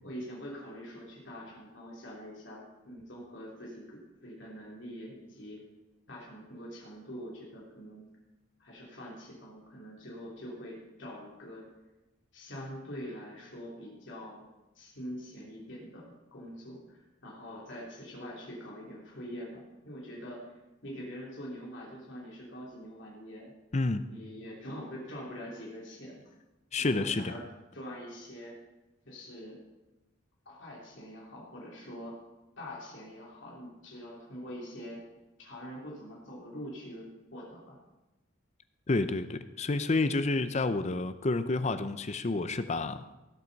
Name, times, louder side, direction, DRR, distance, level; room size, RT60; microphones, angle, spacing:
voice 1, 0.0-5.6 6.1-8.1 8.6-11.7 12.3-14.4 14.7-20.5 20.8-23.5 24.1-26.2 26.8-27.4 27.7-28.5 29.0-29.6 30.4-32.2 32.6-35.1 35.4-37.8, equal, 60° left, -4 dB, 3.1 m, -44 dB
voice 2, 23.7-24.1 26.7-27.3 38.9-43.0, left 3 dB, 35° left, 12 dB, 0.6 m, -29 dB
17.0 x 7.8 x 4.1 m, 1.0 s
head